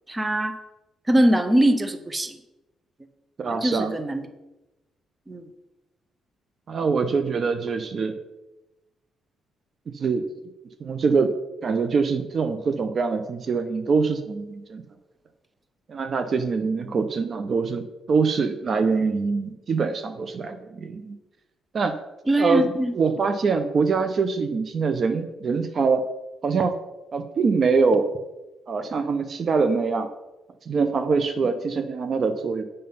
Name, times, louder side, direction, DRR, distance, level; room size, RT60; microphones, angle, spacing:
voice 1, 0.1-0.6 1.1-2.4 3.5-4.2 5.3-5.4 16.8-17.0 22.3-22.9, right 1 dB, 20° right, 9 dB, 0.8 m, -22 dB
voice 2, 3.4-3.9 6.7-8.1 9.9-10.3 10.8-11.3 11.6-14.8 15.9-21.2 21.7-22.0 22.4-26.0 26.4-26.7 27.1-28.1 28.7-30.1 30.7-32.6, right 4 dB, 50° right, 8 dB, 0.7 m, -24 dB
7.8 x 5.3 x 5.5 m, 1.0 s
cardioid pair, 90°, 0 cm